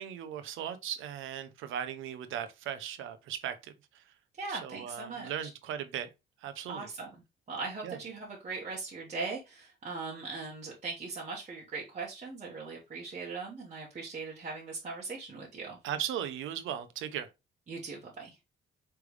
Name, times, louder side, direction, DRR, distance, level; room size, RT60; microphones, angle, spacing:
voice 1, 0.0-3.7 4.5-6.1 6.4-6.9 7.8-8.0 15.8-17.3, right 9 dB, 85° right, 0.7 m, -37 dB
voice 2, 4.4-5.5 6.7-7.1 7.5-15.8 17.7-18.4, right 4 dB, 35° right, 1.4 m, -40 dB
4.8 x 3.4 x 3.2 m
cardioid pair, 90°, 20 cm